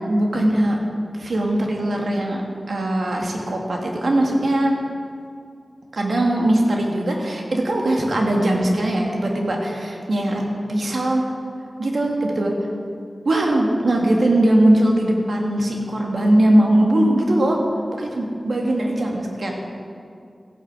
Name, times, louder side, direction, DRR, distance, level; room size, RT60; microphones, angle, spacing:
voice 1, 0.1-0.8 1.1-2.4 2.7-4.7 5.9-10.4 10.7-11.2 11.8-12.5 13.3-17.6 17.9-19.5, right 1 dB, 80° right, 0 dB, 2.0 m, -20 dB
15.0 x 8.9 x 6.1 m, 2.4 s
wide cardioid pair, 55°, 0 cm